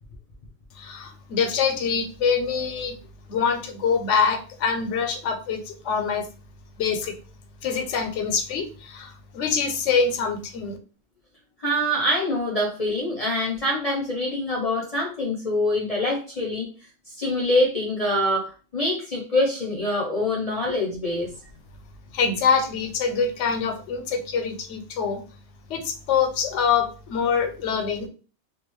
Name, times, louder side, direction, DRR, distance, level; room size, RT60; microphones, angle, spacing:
voice 1, 0.8-3.0 3.3-6.3 6.8-7.1 7.6-10.8 22.1-25.2 25.7-28.1, left 6 dB, 85° left, 6 dB, 0.9 m, -25 dB
voice 2, 11.6-16.7 17.1-21.3, left 1 dB, 45° left, -2 dB, 0.5 m, -25 dB
2.5 x 2.2 x 3.0 m, 0.36 s
omnidirectional pair, 1.2 m